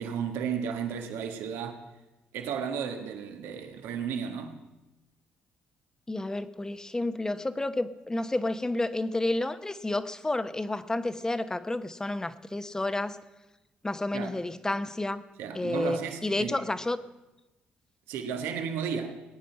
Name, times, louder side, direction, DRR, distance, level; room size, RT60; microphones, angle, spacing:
voice 1, 0.0-1.8 2.3-4.6 14.1-14.3 15.4-16.6 18.1-19.2, right 7 dB, 90° right, 1.5 m, -33 dB
voice 2, 6.1-13.2 13.8-15.2 15.5-17.0, left 2 dB, 15° left, 0.9 m, -30 dB
20.0 x 9.1 x 5.7 m
cardioid pair, 75°, 4 cm